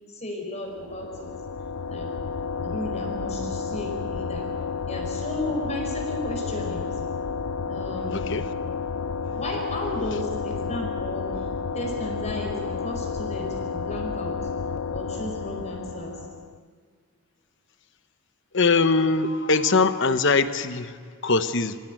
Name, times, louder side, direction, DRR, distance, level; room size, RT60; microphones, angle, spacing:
voice 1, 0.1-1.3 1.9-2.1 2.6-4.5 4.8-7.0 7.7-8.2 9.3-11.5 11.7-14.5 14.9-16.2, left 1 dB, 30° left, 1 dB, 4.8 m, -34 dB
sound 1, 0.7-16.6, left 5 dB, 80° left, 0.5 m, -31 dB
voice 2, 8.1-8.5 18.5-21.8, left 4 dB, 55° left, 11 dB, 1.1 m, -22 dB
25.0 x 16.5 x 9.1 m, 2.1 s
head